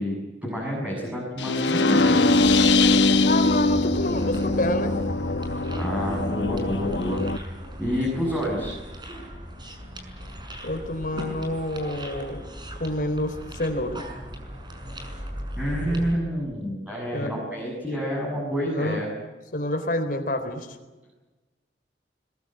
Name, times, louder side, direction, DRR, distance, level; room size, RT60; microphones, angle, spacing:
voice 1, 0.0-2.2 5.8-7.4 7.8-8.8 15.6-19.1, equal, 10° right, -3 dB, 7.4 m, -28 dB
sound 1, 1.4-7.4, left 2 dB, 80° left, 1.0 m, -22 dB
sound 2, 2.4-16.1, equal, 25° right, 6.1 m, -36 dB
voice 2, 3.3-5.0 10.6-12.4 12.8-14.0 17.1-17.4 18.7-19.0 19.5-20.8, left 1 dB, 55° left, 6 dB, 4.2 m, -28 dB
22.0 x 21.5 x 9.3 m, 1.2 s
head